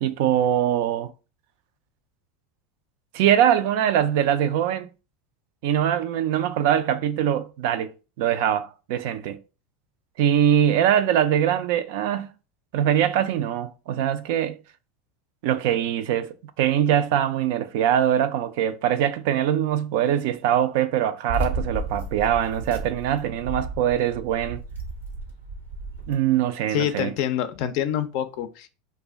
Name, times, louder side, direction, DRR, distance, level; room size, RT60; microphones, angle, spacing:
voice 1, 0.0-1.1 3.1-4.9 5.6-9.4 10.2-12.3 12.7-14.5 15.4-24.6 26.1-27.1, right 10 dB, 65° right, 0.3 m, -22 dB
sound 1, 21.3-26.1, right 2 dB, 90° right, 0.8 m, -33 dB
voice 2, 26.7-28.7, left 10 dB, 60° left, 0.4 m, -26 dB
2.4 x 2.1 x 3.4 m
hypercardioid pair, 90°, 0 cm